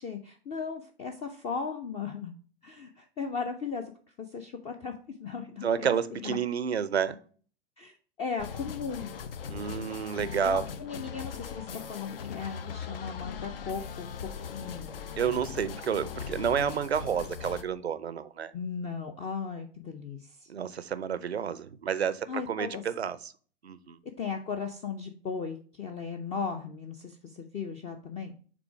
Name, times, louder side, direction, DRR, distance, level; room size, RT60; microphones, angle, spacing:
voice 1, 0.0-2.3 2.6-3.9 4.2-6.4 7.8-9.2 10.4-14.1 14.4-15.0 18.5-20.5 22.3-22.8 24.0-28.3, left 5 dB, 20° left, 5 dB, 0.5 m, -37 dB
voice 2, 5.6-7.2 9.5-10.6 15.2-18.5 20.5-23.2 23.6-24.0, right 7 dB, 80° right, 15 dB, 0.6 m, -30 dB
sound 1, 8.4-17.6, left 7 dB, 65° left, 0.7 m, -39 dB
6.1 x 3.7 x 4.6 m, 0.43 s
figure-of-eight pair, 100°, 31 cm